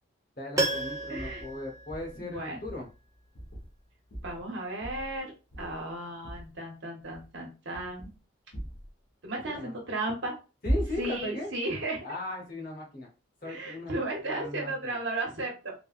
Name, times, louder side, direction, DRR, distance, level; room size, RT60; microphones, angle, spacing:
voice 1, 0.4-2.9 9.5-9.7 10.6-11.5 12.0-13.1 13.4-13.9 14.2-15.0, left 1 dB, 45° left, -1 dB, 1.1 m, -37 dB
Piano, 0.6-2.6 2.9-3.0, right 2 dB, 20° right, 0.5 m, -33 dB
voice 2, 1.1-1.5 2.2-2.6 4.2-8.1 9.2-10.3 11.0-12.1 13.4-15.7, right 2 dB, 65° right, 0 dB, 1.0 m, -35 dB
sound 1, 1.2-1.5 1.9-2.2 2.6-2.9 3.3-3.8 4.1-4.4 4.8-5.2 5.5-5.9 6.2-6.5 7.0-7.4 7.7-8.2 8.5-8.9 10.6-11.2, right 1 dB, 70° left, 1.0 m, -36 dB
3.4 x 2.2 x 2.4 m, 0.31 s
head